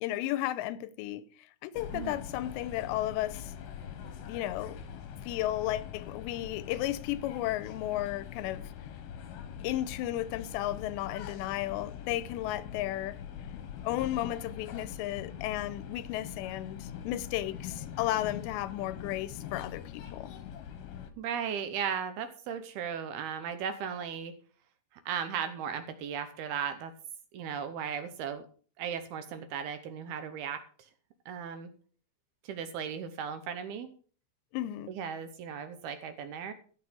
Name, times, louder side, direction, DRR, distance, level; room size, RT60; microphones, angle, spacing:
voice 1, 0.0-1.2 1.6-3.5 4.2-4.8 5.2-8.7 9.6-13.2 13.8-20.3 34.5-34.9, left 14 dB, 80° left, 2.8 m, -34 dB
sound 1, 1.7-21.1, left 8 dB, 65° left, 2.3 m, -43 dB
voice 2, 21.2-24.3 25.1-26.9 27.3-28.4 28.8-30.6 31.3-31.7 32.4-33.9 34.9-36.5, right 7 dB, 75° right, 2.5 m, -36 dB
13.5 x 7.3 x 6.2 m
omnidirectional pair, 5.4 m